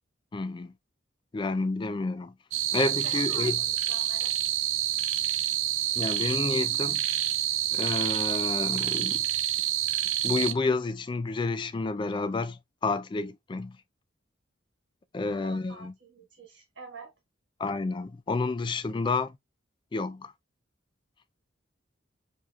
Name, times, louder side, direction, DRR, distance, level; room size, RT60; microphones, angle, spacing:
voice 1, 0.3-0.7 1.3-2.3 2.7-3.6 6.0-7.0 7.7-9.3 10.2-13.8 15.1-15.9 17.6-19.4 19.9-20.3, left 3 dB, 25° left, 0.3 m, -30 dB
sound 1, 2.5-10.5, right 12 dB, 85° right, 0.4 m, -28 dB
voice 2, 3.0-4.4 15.2-17.1, right 3 dB, 70° right, 1.4 m, -46 dB
4.9 x 2.9 x 2.3 m
head